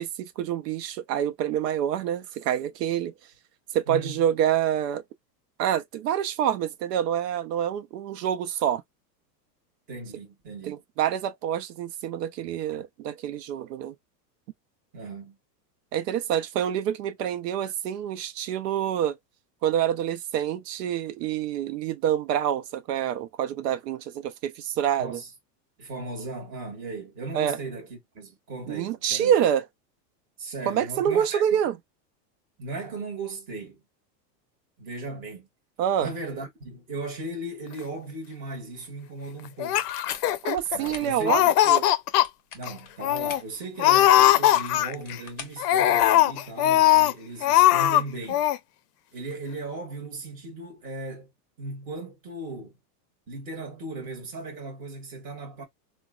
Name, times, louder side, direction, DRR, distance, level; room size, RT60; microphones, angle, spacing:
voice 1, 0.0-3.1 3.7-5.0 5.6-8.8 10.7-13.9 15.9-19.1 19.6-25.2 27.3-27.6 28.7-29.6 30.7-31.8 35.8-36.1 40.4-41.4 41.7-41.9, right 10 dB, 75° right, 0.5 m, -27 dB
voice 2, 3.9-4.2 9.9-10.8 14.9-15.4 25.0-25.3 25.8-29.4 30.4-31.6 32.6-33.8 34.8-35.5 36.0-39.9 40.7-41.5 42.5-48.4 49.1-51.3 51.6-52.8 53.3-55.6, right 2 dB, 15° right, 0.7 m, -37 dB
Laughter, 39.6-40.9 41.2-42.3 42.7-42.8 43.0-43.4 43.8-45.1 45.6-47.1 47.4-48.0 48.3-48.6, left 13 dB, 70° left, 0.5 m, -20 dB
sound 1, 39.9-41.3 42.1-43.6 44.3-46.3, left 5 dB, 25° left, 0.6 m, -44 dB
3.8 x 2.1 x 2.3 m
supercardioid pair, 175°, 50 cm